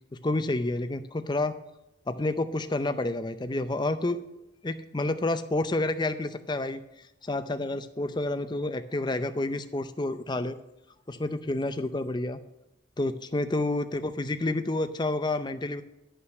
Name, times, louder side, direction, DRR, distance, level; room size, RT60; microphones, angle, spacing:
voice 1, 0.1-1.5 2.1-4.2 4.6-6.8 7.2-10.6 11.1-12.4 13.0-15.8, left 2 dB, 20° left, 10 dB, 0.5 m, -29 dB
11.0 x 5.7 x 6.5 m, 0.94 s
head